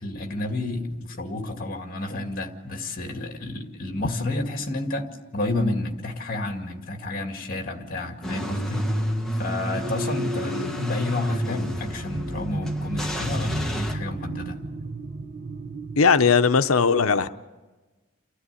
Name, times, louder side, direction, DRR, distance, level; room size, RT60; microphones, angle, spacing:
voice 1, 0.0-8.8 9.4-14.6, left 2 dB, 40° left, 4 dB, 2.3 m, -30 dB
Car / Engine starting / Idling, 8.2-13.9, equal, ahead, 1.4 m, -30 dB
sound 1, 9.7-16.0, right 1 dB, 60° right, 1.0 m, -34 dB
voice 2, 10.4-10.8 16.0-17.3, left 5 dB, 80° left, 10 dB, 0.7 m, -19 dB
29.5 x 13.0 x 9.8 m, 1.2 s
head